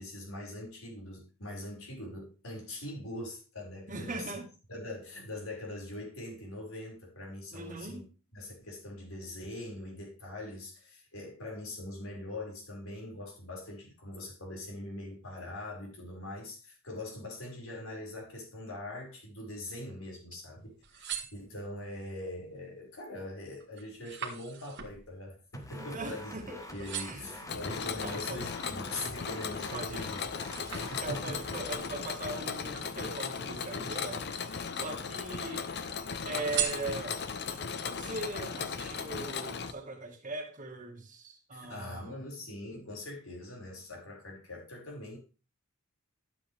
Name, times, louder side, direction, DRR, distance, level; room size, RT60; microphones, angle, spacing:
voice 1, 0.0-4.3 4.7-8.0 8.3-26.3 26.7-30.2 30.6-31.4 41.5-45.2, left 1 dB, 90° left, -2 dB, 5.7 m, -42 dB
voice 2, 3.9-4.5 7.5-8.1 25.7-27.2 28.0-28.4 29.7-30.1 31.0-34.3 34.8-35.7 36.2-42.2, right 2 dB, 40° right, 4 dB, 1.9 m, -40 dB
sound 1, 20.7-22.0 22.5-22.9 23.3-26.4 26.7-27.4 28.0-29.5 29.9-31.5 32.3-33.5 34.0-34.8 35.2-35.9 36.4-37.4 37.9-38.0, right 9 dB, 60° right, 1.7 m, -40 dB
sound 2, 25.5-31.7, left 1 dB, 15° left, 1.4 m, -47 dB
Mechanisms, 27.5-39.7, left 6 dB, 55° left, 0.9 m, -37 dB
12.5 x 7.9 x 3.5 m, 0.33 s
head